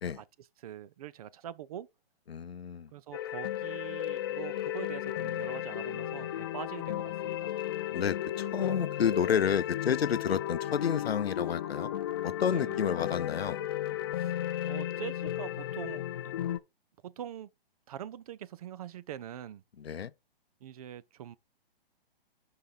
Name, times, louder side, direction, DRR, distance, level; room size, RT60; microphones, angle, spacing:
voice 1, 0.6-1.9 2.9-7.5 12.5-12.8 14.1-14.4 14.7-16.0 17.0-17.5 17.9-19.6 20.6-21.4, right 11 dB, 40° right, 0.5 m, -43 dB
voice 2, 2.3-2.9 7.9-11.9 12.2-13.6 19.8-20.1, left 8 dB, 90° left, 0.6 m, -30 dB
sound 1, 3.1-16.6, left 12 dB, 25° left, 0.4 m, -34 dB
5.8 x 5.7 x 4.0 m
hypercardioid pair, 135°, 30 cm